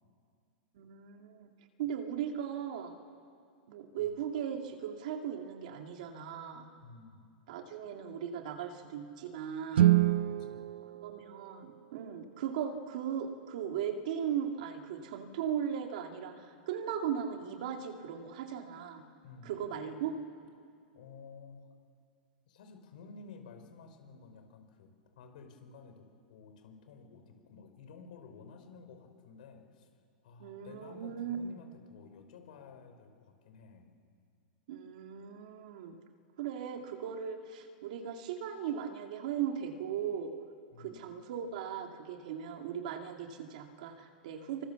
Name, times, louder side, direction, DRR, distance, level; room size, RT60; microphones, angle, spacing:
voice 1, 0.7-1.5 1.8-2.9 3.7-6.7 7.5-10.0 11.0-19.0 19.4-20.1 30.4-31.4 34.7-36.0 36.4-40.3 40.8-44.7, right 8 dB, 45° right, 4 dB, 2.4 m, -38 dB
voice 2, 6.8-7.2 10.3-10.7 19.2-19.6 20.9-21.7 22.5-24.9 25.2-29.9 30.2-33.9 40.7-41.1, left 5 dB, 55° left, 6 dB, 4.6 m, -53 dB
Guitar, 9.7-12.3, right 14 dB, 80° right, 0.7 m, -28 dB
26.0 x 25.0 x 7.1 m, 2.2 s
supercardioid pair, 180°, 6 cm